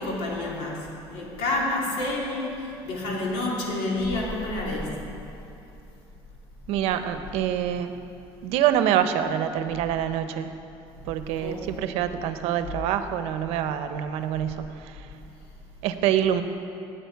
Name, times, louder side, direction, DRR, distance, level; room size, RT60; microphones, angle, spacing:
voice 1, 0.0-5.0 11.4-11.7, left 2 dB, 90° left, -3 dB, 2.8 m, -29 dB
voice 2, 6.7-7.9 8.4-10.5 11.1-15.0 15.8-16.4, right 10 dB, 80° right, 9 dB, 0.8 m, -26 dB
17.5 x 9.0 x 4.7 m, 2.8 s
cardioid pair, 155°, 11 cm